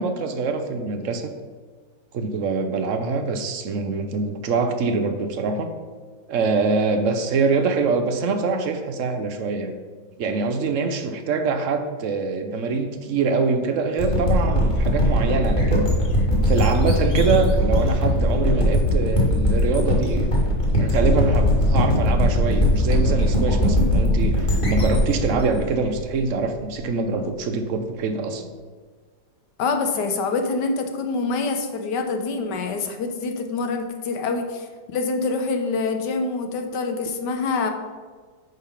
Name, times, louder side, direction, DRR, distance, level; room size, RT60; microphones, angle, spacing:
voice 1, 0.0-1.3 2.1-5.7 6.3-9.8 10.2-15.9 16.5-20.3 20.8-28.4, right 4 dB, 65° right, 7 dB, 0.7 m, -24 dB
sound 1, 14.0-26.6, left 1 dB, 30° left, 1.8 m, -20 dB
voice 2, 29.6-37.7, left 4 dB, 70° left, 5 dB, 1.4 m, -26 dB
9.1 x 3.6 x 5.7 m, 1.5 s
omnidirectional pair, 2.0 m